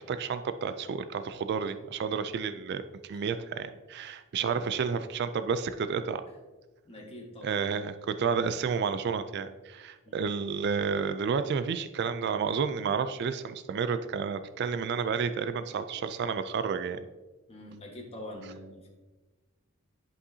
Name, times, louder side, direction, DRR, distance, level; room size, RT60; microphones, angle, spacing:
voice 1, 0.0-6.2 7.4-17.1, right 6 dB, 50° right, 11 dB, 0.3 m, -31 dB
voice 2, 4.0-4.8 6.8-7.9 10.0-10.2 17.5-18.9, left 1 dB, 25° left, 0 dB, 1.4 m, -45 dB
10.5 x 5.5 x 2.7 m, 1.2 s
head